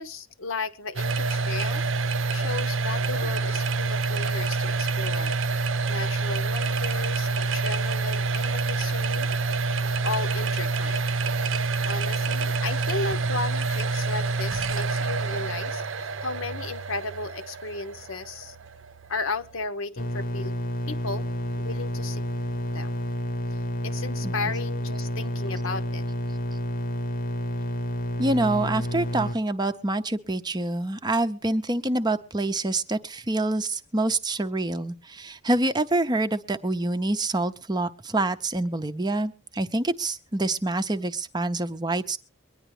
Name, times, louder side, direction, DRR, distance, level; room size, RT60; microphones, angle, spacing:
voice 1, 0.0-1.9 2.3-9.3 10.0-11.1 11.9-18.6 19.1-20.5 20.9-21.3 21.6-22.2 22.7-22.9 23.8-26.1, left 3 dB, 70° left, 10 dB, 1.0 m, -34 dB
sound 1, 1.0-19.7, right 3 dB, 65° right, 0.7 m, -27 dB
sound 2, 20.0-29.3, equal, 45° left, 0.9 m, -30 dB
voice 2, 28.2-42.2, right 2 dB, 20° right, 9 dB, 0.6 m, -26 dB
23.0 x 10.0 x 3.2 m, 0.37 s
head